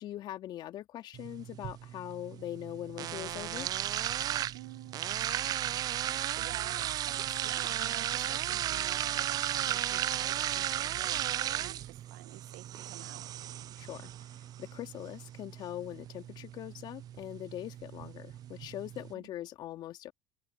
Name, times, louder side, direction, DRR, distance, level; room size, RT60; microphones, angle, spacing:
voice 1, 0.0-3.7 13.8-20.1, left 13 dB, 60° left, 3.0 m, -42 dB
sound 1, 1.1-19.1, right 12 dB, 45° right, 0.4 m, -35 dB
voice 2, 4.5-5.0 6.3-13.3 19.1-19.3, right 23 dB, 75° right, 2.0 m, -50 dB
hypercardioid pair, 75°, 9 cm